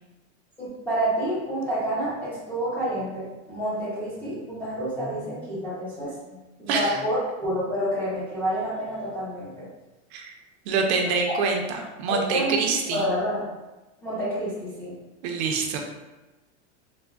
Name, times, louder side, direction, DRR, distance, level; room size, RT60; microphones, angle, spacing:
voice 1, 0.6-9.7 12.1-13.5 14.0-15.0, right 1 dB, 5° left, -11 dB, 0.5 m, -29 dB
voice 2, 6.7-7.0 10.1-10.3 10.7-13.1 15.2-15.8, right 4 dB, 60° right, 2 dB, 0.5 m, -25 dB
3.4 x 2.1 x 2.2 m, 1.1 s
supercardioid pair, 155°, 37 cm